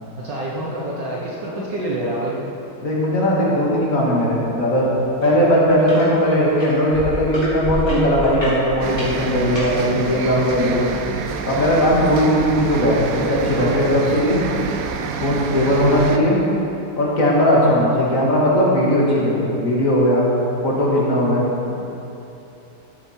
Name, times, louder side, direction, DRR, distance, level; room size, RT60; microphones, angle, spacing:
voice 1, 0.2-2.4 15.7-16.1 17.6-17.8, right 2 dB, 60° right, -4 dB, 1.7 m, -27 dB
voice 2, 2.8-5.0 5.2-10.9 11.4-14.4 15.2-16.4 17.0-20.2 20.6-21.7, equal, 40° left, -5 dB, 2.3 m, -18 dB
sound 1, 5.2-5.4 5.7-6.1 6.6-9.7 10.4-10.5, equal, 20° left, 3.0 m, -27 dB
sound 2, 8.8-16.2, right 6 dB, 80° right, 0.8 m, -27 dB
13.5 x 8.9 x 4.4 m, 2.9 s
omnidirectional pair, 2.3 m